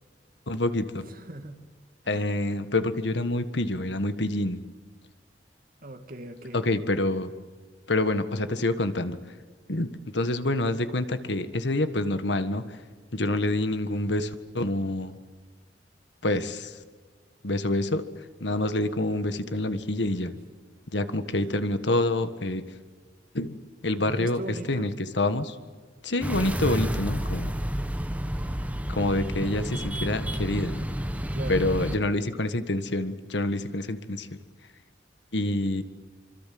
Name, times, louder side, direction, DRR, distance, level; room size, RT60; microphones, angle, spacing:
voice 1, 0.5-1.1 2.1-4.6 6.5-7.3 7.9-9.2 9.7-12.8 13.1-15.1 16.2-16.8 17.4-18.0 18.4-20.3 20.9-22.6 23.3-23.6 23.8-25.5 26.0-27.5 28.9-30.8 31.5-34.3 35.3-35.8, left 1 dB, 70° left, 11 dB, 1.6 m, -27 dB
voice 2, 1.1-1.6 2.0-2.4 5.8-6.7 21.4-21.5 24.0-24.9 31.2-32.1, right 1 dB, 50° right, 6 dB, 2.5 m, -40 dB
sound 1, 26.2-32.0, equal, 10° right, 1.2 m, -30 dB
26.0 x 26.0 x 7.8 m, 1.5 s
head